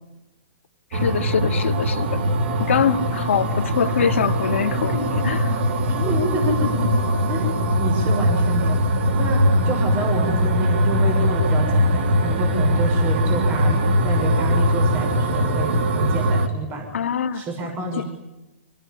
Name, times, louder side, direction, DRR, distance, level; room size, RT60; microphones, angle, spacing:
voice 1, 0.9-2.2 2.7-5.6 16.9-18.0, left 7 dB, 80° left, 5 dB, 2.4 m, -24 dB
sound 1, 0.9-16.5, equal, 60° right, 3.2 m, -21 dB
voice 2, 5.9-6.9 7.3-7.5 7.8-16.9 17.3-18.0, right 2 dB, 30° right, 3 dB, 6.4 m, -29 dB
27.0 x 19.5 x 10.0 m, 1.0 s
hypercardioid pair, 140°, 7 cm